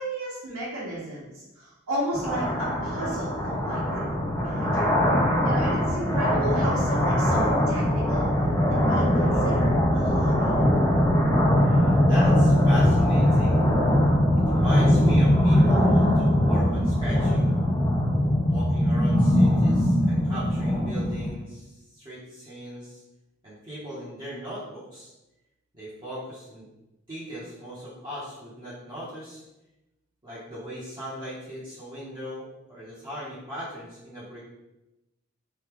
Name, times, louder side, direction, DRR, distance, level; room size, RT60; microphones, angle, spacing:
voice 1, 0.0-4.0 4.3-4.9 5.4-8.3 8.7-10.6, equal, 90° right, -9 dB, 1.0 m, -34 dB
sound 1, 2.1-21.3, equal, 15° left, 0.5 m, -21 dB
voice 2, 11.5-13.6 14.5-17.5 18.5-23.0 23.4-25.1 25.7-26.7 27.1-29.4 30.2-34.4, equal, 25° right, -10 dB, 0.8 m, -38 dB
3.0 x 2.2 x 3.5 m, 0.95 s
head